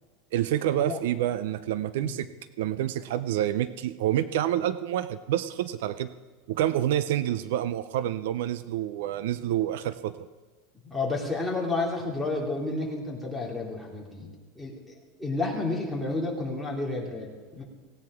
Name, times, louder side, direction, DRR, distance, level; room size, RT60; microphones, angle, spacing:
voice 1, 0.3-2.3 2.6-6.1 6.5-10.2, right 12 dB, 70° right, 14 dB, 0.6 m, -28 dB
voice 2, 10.8-14.3 14.6-17.6, left 2 dB, ahead, -3 dB, 2.6 m, -31 dB
17.5 x 17.0 x 3.7 m, 1.4 s
supercardioid pair, 165°, 0 cm